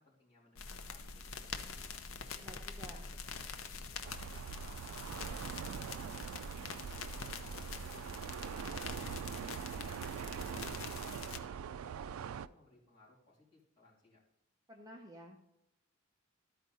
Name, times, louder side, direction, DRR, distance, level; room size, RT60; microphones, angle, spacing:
voice 1, 0.0-2.0 2.5-6.2 6.5-8.6 9.1-14.2, left 2 dB, 25° left, -7 dB, 3.1 m, -64 dB
sound 1, 0.5-11.4, left 5 dB, 75° left, 0.7 m, -45 dB
voice 2, 2.4-3.1 14.7-15.4, equal, 20° right, 0 dB, 0.7 m, -52 dB
sound 2, 4.0-12.5, right 8 dB, 80° right, 0.3 m, -43 dB
13.0 x 4.7 x 4.0 m, 0.86 s
head